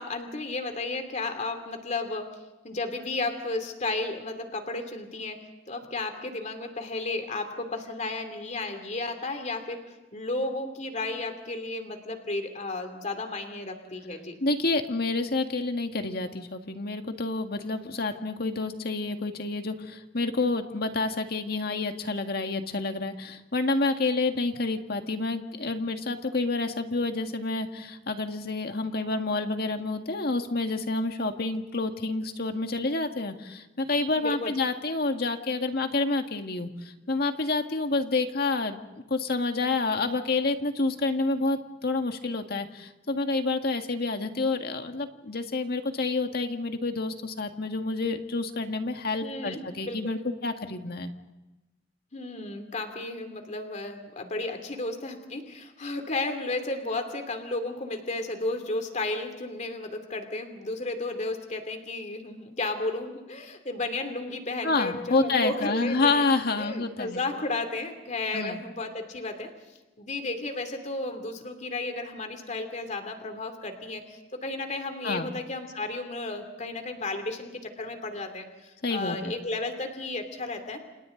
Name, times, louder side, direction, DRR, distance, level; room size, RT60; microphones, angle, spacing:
voice 1, 0.0-2.4 2.6-9.8 10.1-14.4 34.2-34.5 49.2-50.2 52.1-66.3 66.6-69.5 70.0-80.8, left 2 dB, 40° left, 6 dB, 2.9 m, -33 dB
voice 2, 14.4-51.1 64.6-67.2 68.3-68.6 75.0-75.3 78.8-79.3, left 3 dB, 60° left, 5 dB, 1.9 m, -28 dB
29.5 x 28.0 x 3.9 m, 1.1 s
head